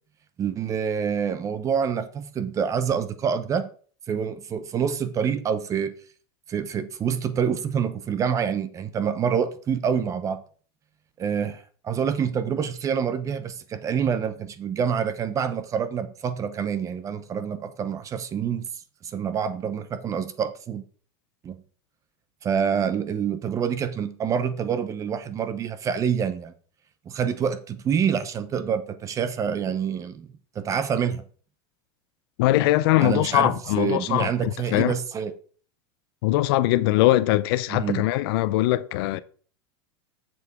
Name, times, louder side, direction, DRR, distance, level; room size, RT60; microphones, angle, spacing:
voice 1, 0.4-3.7 4.1-5.9 6.5-10.4 11.2-18.7 19.0-20.8 21.4-21.6 22.4-26.5 27.1-30.3 30.6-31.2 33.0-35.3 37.7-38.0, right 7 dB, 25° right, 0.8 m, -27 dB
voice 2, 32.4-35.0 36.2-39.2, left 16 dB, 60° left, 0.6 m, -21 dB
7.1 x 6.7 x 4.8 m
supercardioid pair, 150°, 14 cm